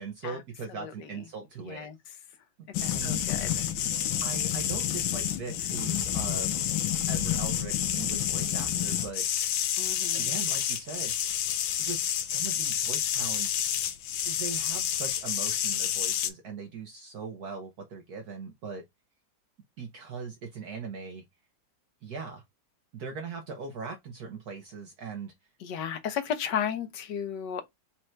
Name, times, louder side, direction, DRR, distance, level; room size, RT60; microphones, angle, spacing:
voice 1, 0.0-1.9 2.8-3.2 4.2-6.5 7.1-9.3 10.1-11.1 11.8-13.6 14.3-18.8 19.8-21.2 22.0-22.4 22.9-25.3, right 5 dB, 60° right, 1.1 m, -40 dB
voice 2, 0.7-1.1 1.6-2.0 3.0-3.7 9.8-10.3 25.6-27.6, left 8 dB, 70° left, 1.3 m, -34 dB
sound 1, 2.7-16.3, left 10 dB, 90° left, 1.5 m, -29 dB
4.3 x 2.5 x 4.3 m
omnidirectional pair, 2.1 m